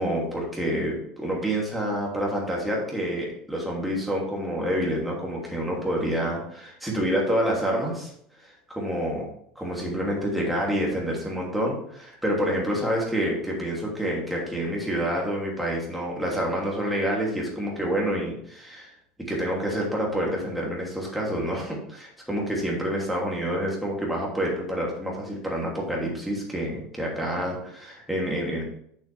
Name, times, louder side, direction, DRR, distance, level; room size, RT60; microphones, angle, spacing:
voice 1, 0.0-8.1 8.4-9.2 9.6-18.9 19.2-28.6, equal, ahead, -3 dB, 2.9 m, -28 dB
8.4 x 7.5 x 3.5 m, 0.68 s
supercardioid pair, 140°, 0 cm